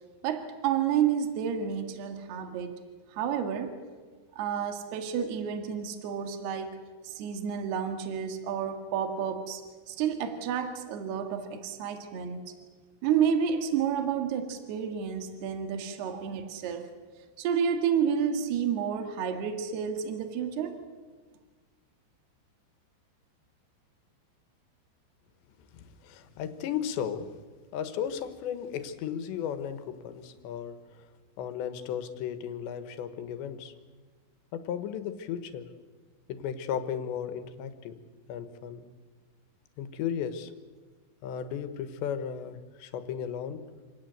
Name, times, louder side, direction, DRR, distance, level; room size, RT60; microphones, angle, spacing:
voice 1, 0.2-2.8 3.1-3.8 4.4-6.8 7.0-9.6 9.9-12.6 13.0-16.9 17.4-20.8, right 8 dB, 70° right, 7 dB, 3.6 m, -30 dB
voice 2, 25.7-27.3 27.7-31.1 31.4-33.7 34.5-35.7 36.3-38.0 38.3-38.9 39.8-40.5 41.2-43.6, left 8 dB, 90° left, 10 dB, 3.6 m, -35 dB
27.0 x 18.5 x 8.0 m, 1.4 s
omnidirectional pair, 5.0 m